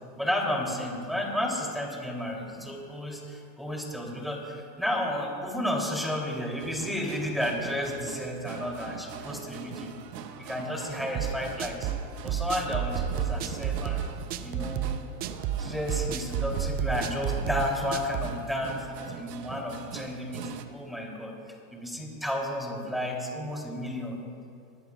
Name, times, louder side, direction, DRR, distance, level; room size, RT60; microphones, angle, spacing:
voice 1, 0.1-9.9 10.4-11.9 12.2-14.0 14.4-14.9 15.6-21.3 21.7-24.2, left 1 dB, ahead, -2 dB, 3.0 m, -32 dB
sound 1, 6.6-20.7, right 7 dB, 75° right, 1.2 m, -42 dB
sound 2, 11.1-18.4, right 9 dB, 20° right, 0.4 m, -31 dB
23.5 x 19.0 x 2.4 m, 2.4 s
hypercardioid pair, 115°, 49 cm